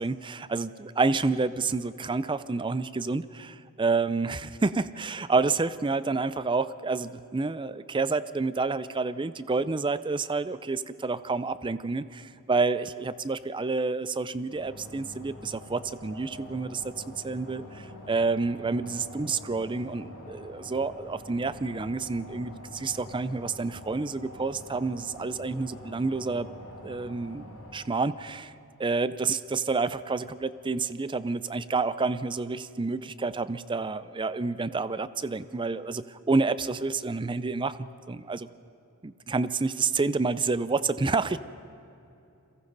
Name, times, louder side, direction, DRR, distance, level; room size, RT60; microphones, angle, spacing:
voice 1, 0.0-16.9 17.2-26.5 26.8-28.5 28.8-38.5 39.0-41.4, right 3 dB, 20° right, 15 dB, 0.5 m, -29 dB
sound 1, 14.5-27.8, left 1 dB, 80° left, 6.9 m, -45 dB
30.0 x 22.5 x 4.0 m, 2.8 s
head